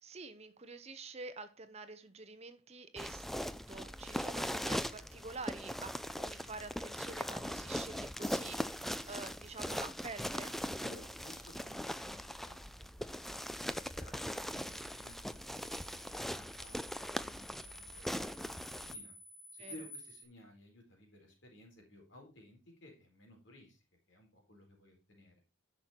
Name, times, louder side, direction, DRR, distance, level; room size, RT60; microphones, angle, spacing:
voice 1, 0.0-10.6 19.6-19.8, right 3 dB, 30° right, 0.8 m, -48 dB
sound 1, 3.0-18.9, equal, ahead, 0.4 m, -40 dB
voice 2, 10.8-19.1 19.5-25.3, left 1 dB, 65° left, 4.3 m, -57 dB
sound 2, 14.4-20.2, left 1 dB, 80° left, 2.9 m, -53 dB
10.5 x 6.2 x 4.3 m
head